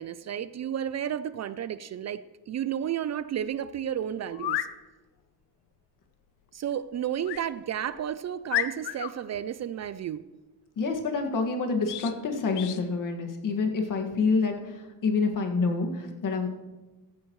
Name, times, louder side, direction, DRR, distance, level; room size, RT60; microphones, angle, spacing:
voice 1, 0.0-4.7 6.5-10.2, right 9 dB, 45° right, 14 dB, 0.4 m, -32 dB
sound 1, 3.4-3.5 4.3-4.7 7.2-7.5 8.0-8.1 8.5-9.1 11.8-12.1 12.5-12.8, left 12 dB, 90° left, 0.8 m, -31 dB
voice 2, 10.8-16.6, left 4 dB, 50° left, 3 dB, 2.0 m, -27 dB
15.5 x 14.0 x 3.2 m, 1.2 s
cardioid pair, 135°, 39 cm